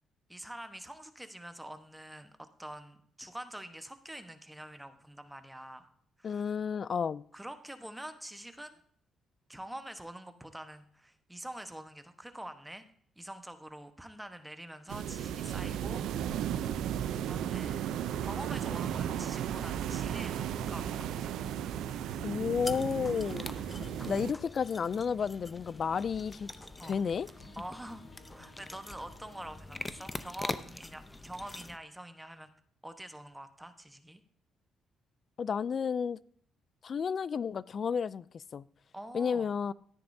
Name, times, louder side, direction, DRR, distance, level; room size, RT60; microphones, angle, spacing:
voice 1, 0.3-5.9 6.2-6.5 7.3-8.8 9.5-12.8 13.2-16.1 17.2-17.8 18.2-21.3 23.8-24.0 26.8-27.0 27.6-28.0 28.3-32.5 32.8-34.2 38.9-39.5, right 1 dB, 5° right, 1.2 m, -46 dB
voice 2, 6.2-7.2 22.2-23.5 23.8-26.5 26.8-27.3 35.4-36.2 36.8-38.6 39.1-39.7, left 6 dB, 50° left, 0.3 m, -32 dB
sound 1, 14.9-24.3, right 10 dB, 85° right, 0.5 m, -35 dB
sound 2, 17.2-30.5, left 2 dB, 70° left, 2.2 m, -54 dB
sound 3, 22.6-31.8, left 2 dB, 15° left, 0.7 m, -44 dB
13.0 x 9.9 x 2.7 m
cardioid pair, 90°, 0 cm